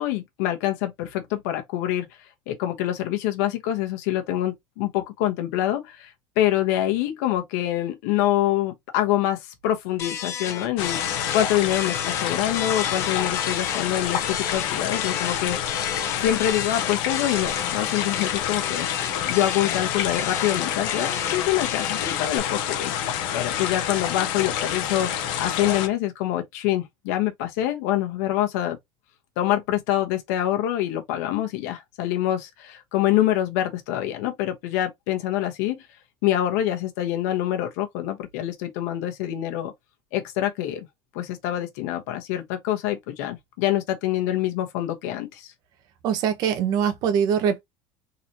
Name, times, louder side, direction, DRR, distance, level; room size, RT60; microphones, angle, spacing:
voice 1, 0.0-2.1 2.5-15.9 16.2-18.9 19.3-22.9 23.3-25.1 25.4-28.8 29.4-35.9 36.2-39.7 40.1-40.9 41.1-45.5, left 13 dB, 90° left, 1.1 m, -25 dB
sound 1, 10.0-22.4, left 8 dB, 35° left, 0.7 m, -33 dB
sound 2, 10.8-25.9, left 10 dB, 65° left, 0.7 m, -28 dB
voice 2, 46.0-47.6, right 8 dB, 50° right, 1.0 m, -22 dB
4.0 x 2.9 x 2.7 m
cardioid pair, 165°, 9 cm